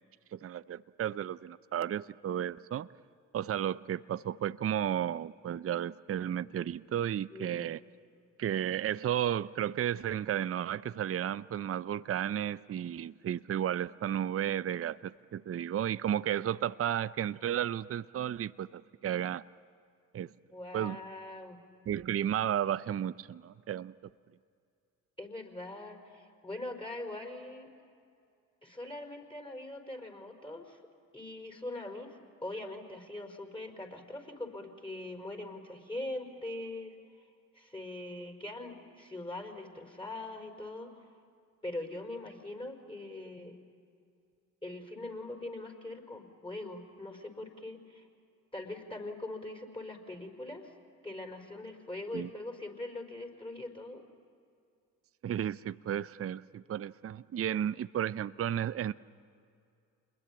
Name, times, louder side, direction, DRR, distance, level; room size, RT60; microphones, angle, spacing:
voice 1, 0.3-2.9 3.3-7.8 8.4-19.4 20.1-20.3 20.7-21.0 21.9-23.9 52.1-52.3 55.2-58.9, right 10 dB, 35° right, 0.6 m, -33 dB
voice 2, 7.3-7.7 20.5-21.6 25.2-27.7 28.6-30.8 31.1-37.3 37.5-40.9 41.6-43.6 44.6-48.1 48.5-50.7 51.0-54.0, left 2 dB, 15° left, 4.9 m, -42 dB
27.5 x 21.5 x 8.8 m
hypercardioid pair, 50°, 39 cm